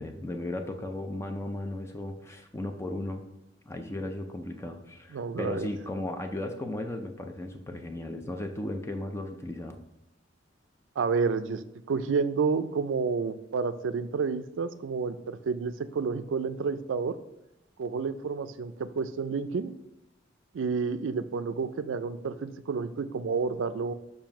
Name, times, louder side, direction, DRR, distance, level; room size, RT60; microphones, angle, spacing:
voice 1, 0.0-3.2 3.7-9.8, left 1 dB, 15° left, 5 dB, 0.4 m, -36 dB
voice 2, 5.1-5.7 11.0-11.6 11.9-17.1 17.8-19.7 20.5-23.9, right 5 dB, 80° right, 12 dB, 0.4 m, -30 dB
7.0 x 2.7 x 5.7 m, 0.91 s
head